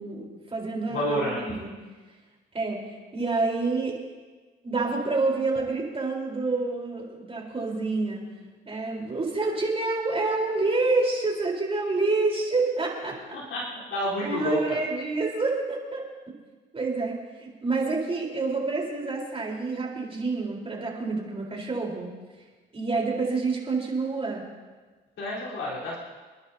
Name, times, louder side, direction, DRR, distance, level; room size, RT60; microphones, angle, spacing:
voice 1, 0.0-1.7 2.5-4.0 4.6-8.3 8.7-13.2 14.2-16.0 16.7-22.1 22.7-24.4, right 3 dB, 30° right, -2 dB, 4.1 m, -28 dB
voice 2, 0.9-1.5 13.3-14.8 25.2-26.0, left 1 dB, 75° left, -6 dB, 4.1 m, -29 dB
28.5 x 10.5 x 2.8 m, 1.3 s
cardioid pair, 90°, 20 cm